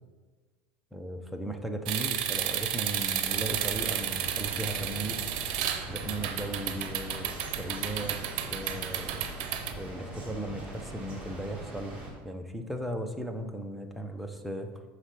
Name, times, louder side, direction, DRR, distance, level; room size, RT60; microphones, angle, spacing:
voice 1, 0.9-5.2 5.9-8.2 8.5-9.3 9.8-11.9 12.2-14.7, right 1 dB, ahead, 4 dB, 0.7 m, -37 dB
sound 1, 1.8-9.7, right 10 dB, 75° right, 0.7 m, -32 dB
sound 2, 3.3-12.1, right 2 dB, 20° right, 2.5 m, -42 dB
6.3 x 4.9 x 5.9 m, 1.4 s
supercardioid pair, 140°, 5 cm